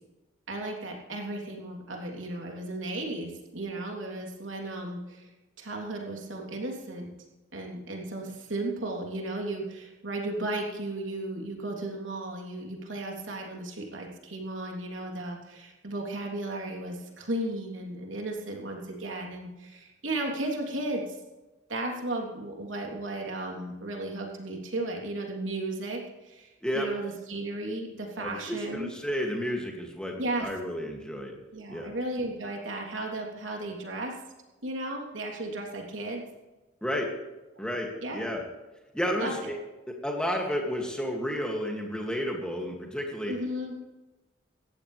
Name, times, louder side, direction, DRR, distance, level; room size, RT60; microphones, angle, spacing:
voice 1, 0.5-5.3 5.6-7.1 7.5-21.0 21.7-26.5 26.7-28.9 30.2-30.5 31.5-34.1 34.6-36.2 38.0-38.3 39.2-39.5 43.3-43.7, right 2 dB, 85° right, 0 dB, 3.4 m, -35 dB
voice 2, 28.2-30.1 30.4-31.3 31.7-31.9 36.8-37.1 37.6-38.4 38.9-39.5 40.0-43.3, equal, 5° left, 0 dB, 2.4 m, -31 dB
18.5 x 14.5 x 3.4 m, 1.1 s
head